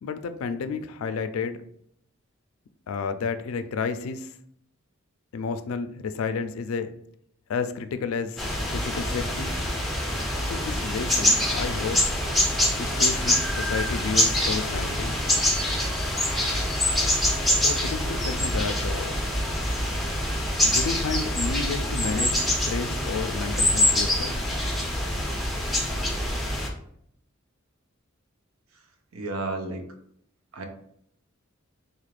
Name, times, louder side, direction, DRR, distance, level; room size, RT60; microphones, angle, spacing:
voice 1, 0.0-1.6 2.9-4.3 5.3-6.9 7.5-9.5 10.4-12.0 12.8-15.2 17.5-19.2 20.6-24.4, left 5 dB, 80° left, 10 dB, 0.4 m, -31 dB
sound 1, 8.4-26.7, left 1 dB, ahead, 0.5 m, -25 dB
voice 2, 29.1-29.8 30.5-30.7, right 2 dB, 85° right, 5 dB, 0.6 m, -31 dB
4.1 x 2.4 x 3.2 m, 0.69 s
head